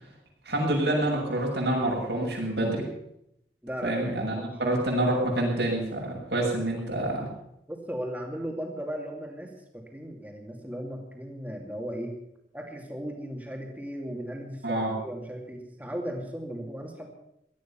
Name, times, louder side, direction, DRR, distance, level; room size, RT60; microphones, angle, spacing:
voice 1, 0.4-2.8 3.8-7.3 14.6-14.9, right 1 dB, 80° right, -2 dB, 6.9 m, -27 dB
voice 2, 3.6-4.0 4.4-4.6 7.7-12.1 12.5-17.1, equal, 10° right, 1 dB, 2.5 m, -36 dB
17.5 x 13.0 x 5.8 m, 0.79 s
head